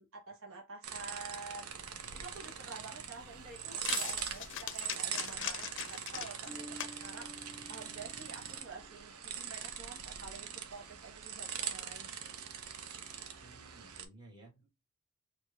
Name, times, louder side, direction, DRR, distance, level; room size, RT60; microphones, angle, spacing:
voice 1, 0.0-1.7 2.1-7.3 7.7-12.4, right 4 dB, 65° right, 1.1 m, -49 dB
sound 1, 0.8-14.1, right 8 dB, 90° right, 0.7 m, -42 dB
sound 2, 1.7-8.6, left 10 dB, 60° left, 0.5 m, -44 dB
Bass guitar, 6.5-9.1, equal, 35° right, 0.6 m, -52 dB
voice 2, 13.4-14.7, right 2 dB, 20° right, 1.4 m, -57 dB
4.6 x 2.6 x 2.4 m
head